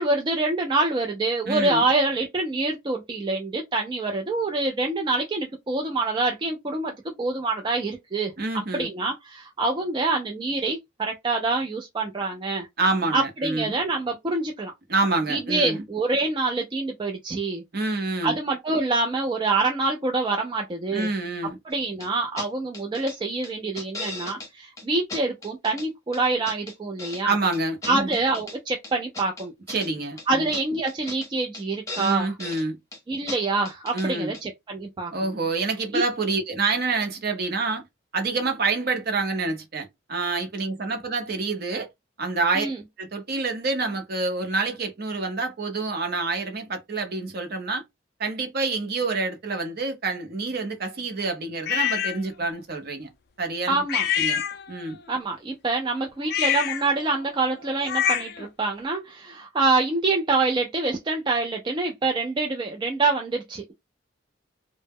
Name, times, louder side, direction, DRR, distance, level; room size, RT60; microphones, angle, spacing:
voice 1, 0.0-6.9 7.2-8.3 8.7-12.7 13.1-14.7 15.3-17.6 18.2-21.1 21.7-27.3 27.9-29.5 30.3-32.3 33.1-35.3 35.9-36.0 42.6-42.8 53.7-54.1 55.1-63.7, right 3 dB, 25° right, 0.3 m, -26 dB
voice 2, 1.4-1.8 8.4-8.9 12.8-13.7 14.9-15.8 17.7-18.4 20.9-21.6 27.2-28.2 29.7-30.5 32.0-32.8 33.9-34.4 35.1-37.8 38.1-41.9 42.2-42.7 43.0-47.8 48.2-53.1 53.4-53.8 54.2-54.4 54.7-55.0, right 3 dB, 50° right, 0.7 m, -27 dB
sound 1, 22.0-22.1 22.4-22.5 22.7-23.2 23.4-24.5 24.8-24.9 25.1-25.9 26.1-27.2 27.5-28.6 28.8-29.9 30.2-30.3 30.5-30.6 30.9-31.3 31.5-31.6 31.9-32.6 32.9-33.0 33.3-33.4 33.6-34.1 34.3-34.4, left 2 dB, 15° left, 0.6 m, -37 dB
sound 2, 51.7-52.2 53.9-55.0 56.2-58.5, left 9 dB, 55° left, 0.3 m, -26 dB
2.0 x 2.0 x 3.4 m
head